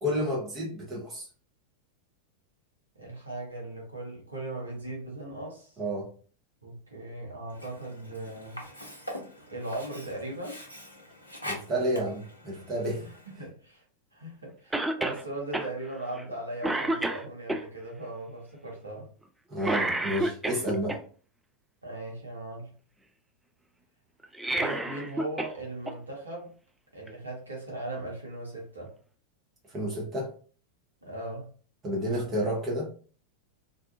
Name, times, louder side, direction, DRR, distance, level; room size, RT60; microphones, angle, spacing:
voice 1, 0.0-1.3 5.8-6.1 11.4-13.0 19.5-21.0 29.7-30.3 31.8-32.9, equal, 25° right, -3 dB, 0.8 m, -30 dB
voice 2, 2.9-5.7 6.6-8.6 9.5-10.6 13.0-13.8 14.1-19.1 21.8-22.7 24.5-26.5 26.9-28.9 31.0-31.5, right 2 dB, 80° right, -2 dB, 0.9 m, -38 dB
Sink (filling or washing), 7.5-13.5, left 1 dB, 85° left, 0.6 m, -44 dB
Cough, 14.7-15.2 15.5-15.7 16.2-16.3 16.6-17.6 19.6-21.0 24.2-25.5 25.9-26.0 27.1-27.2, right 1 dB, 5° right, 0.3 m, -29 dB
2.5 x 2.3 x 2.4 m, 0.42 s
figure-of-eight pair, 90°, 0 cm